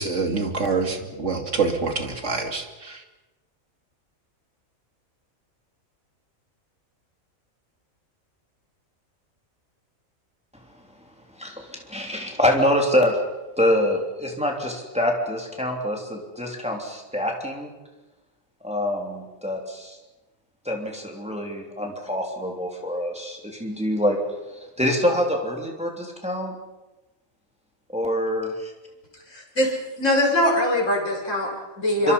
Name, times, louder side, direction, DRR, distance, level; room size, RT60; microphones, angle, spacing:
voice 1, 0.0-3.0, right 4 dB, 60° right, 4 dB, 2.9 m, -26 dB
voice 2, 11.4-13.2 13.6-17.7 18.6-20.0 20.6-24.2 24.5-26.5 27.9-28.7 32.0-32.1, left 1 dB, 5° right, 1 dB, 3.4 m, -25 dB
voice 3, 29.3-32.1, left 1 dB, 65° left, -2 dB, 5.7 m, -22 dB
27.0 x 25.0 x 5.6 m, 1.1 s
omnidirectional pair, 1.4 m